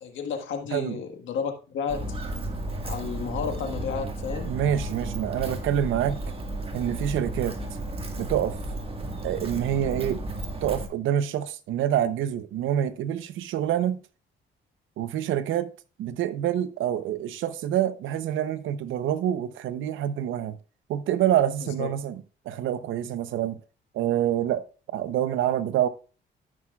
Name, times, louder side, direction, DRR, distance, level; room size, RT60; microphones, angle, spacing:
voice 1, 0.0-2.0 2.8-4.5 21.8-21.9, left 6 dB, 80° left, 1.6 m, -32 dB
Walk footsteps, 1.9-10.9, right 1 dB, 30° right, 1.7 m, -33 dB
voice 2, 4.5-6.2 6.7-7.6 8.2-8.6 9.2-10.2 10.6-14.0 15.0-15.7 16.0-20.6 20.9-23.6 23.9-25.9, right 10 dB, 80° right, 0.8 m, -26 dB
14.0 x 6.1 x 2.4 m
cardioid pair, 90°, 20 cm